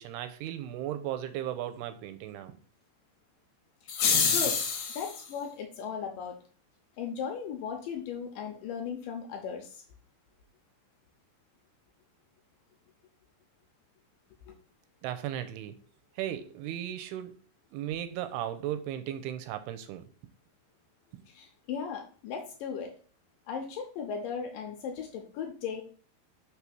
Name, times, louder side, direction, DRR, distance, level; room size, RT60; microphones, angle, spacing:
voice 1, 0.0-2.6 15.0-15.8 16.2-17.4 17.7-20.0, right 11 dB, 85° right, 10 dB, 2.5 m, -36 dB
voice 2, 3.8-4.6 5.0-6.4 7.0-9.8 14.5-14.6 21.3-22.9 23.5-25.8, left 6 dB, 80° left, 3 dB, 2.0 m, -37 dB
sound 1, 3.9-5.2, left 6 dB, 60° left, 2.0 m, -27 dB
6.2 x 3.3 x 5.9 m, 0.42 s
omnidirectional pair, 4.8 m